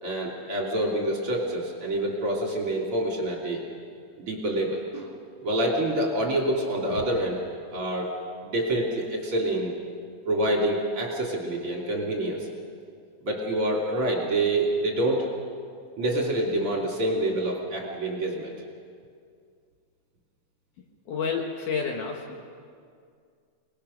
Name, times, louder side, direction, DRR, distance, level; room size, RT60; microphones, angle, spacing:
voice 1, 0.0-3.6 4.2-5.1 5.4-7.4 7.7-8.1 8.4-9.7 10.3-12.5 13.2-15.3 16.0-18.5, right 1 dB, 40° right, -2 dB, 3.4 m, -27 dB
voice 2, 21.1-22.4, left 5 dB, 60° left, 1 dB, 2.7 m, -29 dB
26.0 x 20.0 x 6.5 m, 2.2 s
omnidirectional pair, 4.4 m